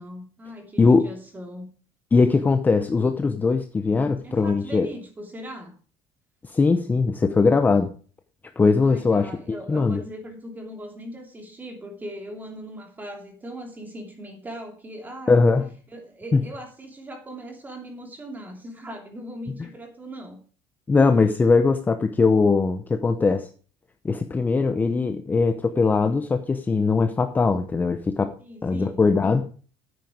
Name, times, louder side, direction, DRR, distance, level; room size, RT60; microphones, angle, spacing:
voice 1, 0.0-1.7 4.2-5.8 8.8-15.4 15.9-20.4 28.4-29.3, equal, 15° right, 3 dB, 3.0 m, -39 dB
voice 2, 0.8-1.1 2.1-4.9 6.5-7.9 8.6-9.3 9.7-10.0 15.3-15.7 16.3-16.5 20.9-23.5 24.0-28.3 28.6-29.5, left 4 dB, 15° left, 8 dB, 0.7 m, -20 dB
9.4 x 9.2 x 4.9 m, 0.40 s
cardioid pair, 150°, 11 cm